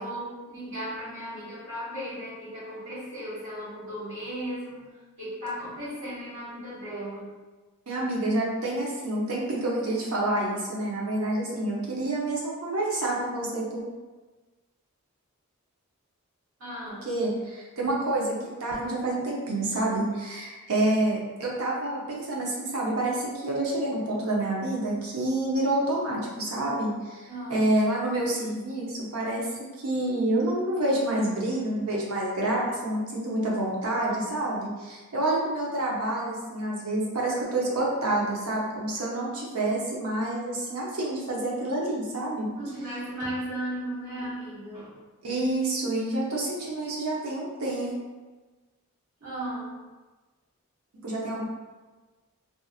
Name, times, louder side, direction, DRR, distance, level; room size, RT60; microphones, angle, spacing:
voice 1, 0.0-4.9 5.2-7.3 16.6-17.1 27.3-27.6 42.6-45.0 49.2-49.8, right 1 dB, 65° right, -10 dB, 1.3 m, -36 dB
voice 2, 7.9-13.8 17.0-29.5 29.8-42.5 45.2-47.9 50.9-51.4, right 1 dB, 85° right, -4 dB, 0.7 m, -28 dB
2.8 x 2.4 x 2.4 m, 1.3 s
head